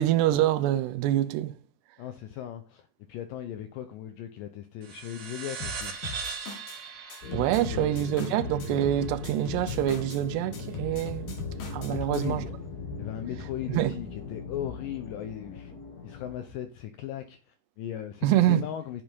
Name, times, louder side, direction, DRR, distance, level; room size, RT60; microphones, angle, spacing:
voice 1, 0.0-1.5 7.3-11.4 11.7-12.4 13.7-14.0 18.2-18.6, right 13 dB, 80° right, 2.8 m, -25 dB
voice 2, 2.0-6.0 7.7-8.3 11.9-12.5 13.0-15.7 16.0-19.0, left 11 dB, 85° left, 1.9 m, -38 dB
sound 1, 4.8-9.7, right 5 dB, 65° right, 1.2 m, -40 dB
sound 2, 5.6-6.8 7.1-10.2 10.5-12.5, left 4 dB, 60° left, 3.7 m, -39 dB
sound 3, 7.2-16.5, left 3 dB, 30° left, 1.9 m, -40 dB
8.5 x 7.1 x 5.2 m
omnidirectional pair, 4.8 m